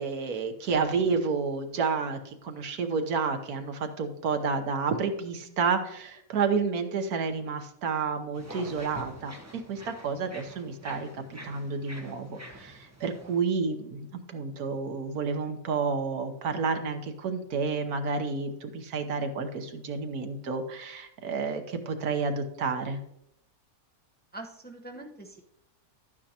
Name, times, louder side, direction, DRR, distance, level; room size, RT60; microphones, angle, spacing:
voice 1, 0.0-23.0, right 5 dB, 85° right, 6 dB, 1.5 m, -30 dB
sound 1, 8.3-13.4, equal, 10° right, 1.1 m, -46 dB
voice 2, 24.3-25.4, right 2 dB, 10° left, 1 dB, 0.7 m, -43 dB
11.5 x 9.2 x 2.9 m, 0.78 s
omnidirectional pair, 1.6 m